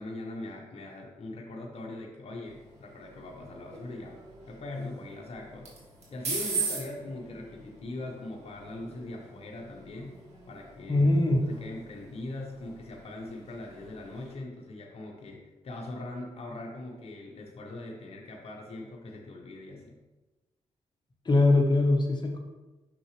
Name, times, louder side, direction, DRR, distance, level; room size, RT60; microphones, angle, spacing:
voice 1, 0.0-4.2 4.5-5.8 6.1-10.2 10.5-11.0 11.5-20.0, left 2 dB, 55° left, 0 dB, 1.0 m, -41 dB
sound 1, 2.4-14.3, right 4 dB, 60° right, 2.2 m, -41 dB
voice 2, 10.9-11.4 21.2-22.4, left 2 dB, 35° left, 3 dB, 1.3 m, -22 dB
6.0 x 5.8 x 3.3 m, 1.1 s
cardioid pair, 65°, 13 cm